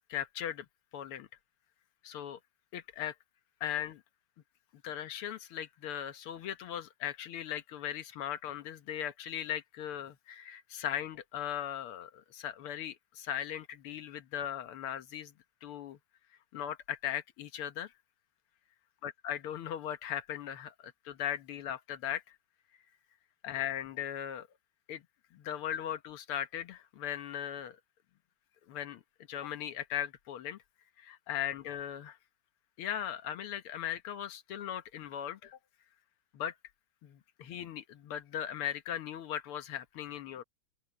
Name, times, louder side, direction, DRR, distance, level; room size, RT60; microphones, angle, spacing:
voice 1, 0.1-0.7 0.9-1.3 2.0-2.4 2.7-3.2 3.6-4.0 4.8-15.3 15.6-16.0 16.5-17.9 19.0-22.4 23.4-24.5 24.9-25.0 25.3-27.8 28.7-29.0 29.3-30.6 31.0-32.2 32.8-35.6 36.3-36.5 37.0-40.4, left 10 dB, 85° left, 2.0 m, -38 dB
open air
omnidirectional pair, 2.4 m